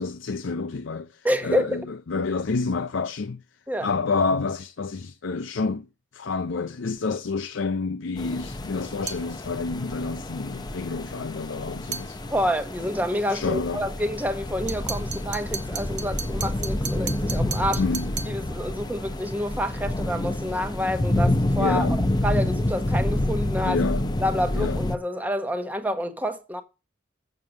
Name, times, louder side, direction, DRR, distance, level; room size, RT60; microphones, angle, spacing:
voice 1, 0.0-3.4 3.8-5.9 6.1-12.2 13.3-13.9 17.8-18.3 21.6-22.0 23.6-24.2 24.5-24.8, left 4 dB, 70° left, 0.5 m, -29 dB
voice 2, 1.2-1.8 3.7-3.9 12.3-17.8 18.3-23.8 24.2-26.6, equal, 10° right, 1.0 m, -28 dB
sound 1, 8.2-25.0, left 1 dB, 20° left, 0.6 m, -28 dB
sound 2, 9.1-9.3 11.9-12.1 14.7-18.4, right 7 dB, 35° right, 0.9 m, -34 dB
7.4 x 6.8 x 7.9 m
head